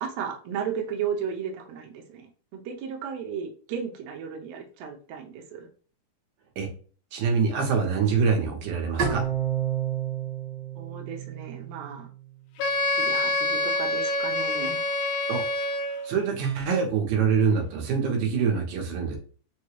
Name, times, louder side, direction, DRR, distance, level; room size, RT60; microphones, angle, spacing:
voice 1, 0.0-5.7 10.7-12.1 13.0-14.8, right 7 dB, 90° right, 2 dB, 1.4 m, -34 dB
voice 2, 7.1-9.2 15.3-15.4 16.0-19.2, right 6 dB, 70° right, 1 dB, 2.2 m, -25 dB
Bowed string instrument, 9.0-12.2, right 9 dB, 55° right, 1.4 m, -30 dB
Wind instrument woodwind instrument, 12.6-16.2, left 2 dB, 80° left, 2.0 m, -26 dB
5.7 x 2.2 x 3.1 m, 0.41 s
omnidirectional pair, 3.9 m